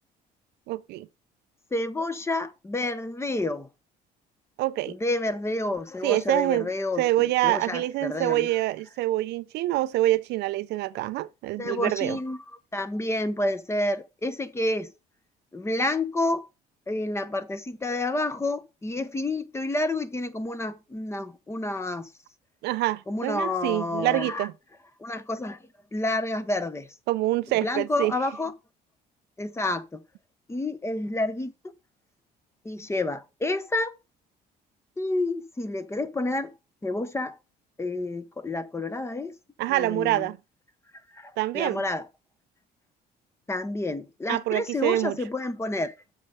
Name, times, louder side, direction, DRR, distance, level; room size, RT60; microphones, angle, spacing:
voice 1, 0.7-1.1 4.6-5.0 6.0-6.7 7.0-12.2 22.6-24.5 27.1-28.1 39.6-40.4 41.4-41.8 44.3-45.2, right 16 dB, 80° right, 0.5 m, -26 dB
voice 2, 1.7-3.7 4.9-8.5 11.6-12.4 12.7-14.9 15.5-16.5 16.9-22.1 23.1-24.5 25.0-25.6 25.9-26.9 27.6-28.5 29.4-30.0 30.5-31.5 32.6-34.0 35.0-36.5 36.8-37.4 37.8-39.3 39.7-40.3 41.1-42.1 43.5-45.9, left 2 dB, 15° left, 1.0 m, -29 dB
7.4 x 5.4 x 5.1 m
cardioid pair, 110°, 17 cm